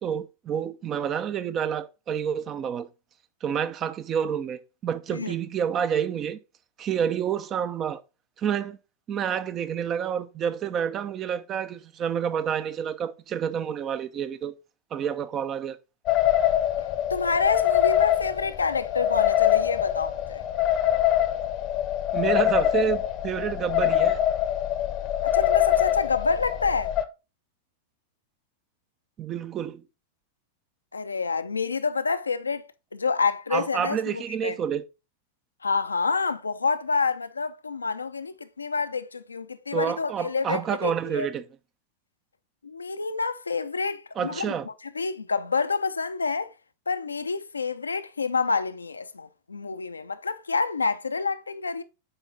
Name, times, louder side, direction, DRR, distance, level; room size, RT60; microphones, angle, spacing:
voice 1, 0.0-2.9 3.4-6.4 6.8-8.0 8.4-8.8 9.1-14.5 14.9-15.8 22.1-24.2 29.2-29.8 33.5-34.8 39.7-41.4 44.2-44.7, right 8 dB, 30° right, 0.6 m, -29 dB
sound 1, 16.1-27.0, left 12 dB, 40° left, 0.7 m, -24 dB
voice 2, 16.8-20.4 25.3-26.9 30.9-34.6 35.6-41.3 42.6-44.5 45.0-46.5 46.9-51.8, left 4 dB, 75° left, 0.5 m, -28 dB
8.0 x 4.4 x 3.8 m
figure-of-eight pair, 90°, 0 cm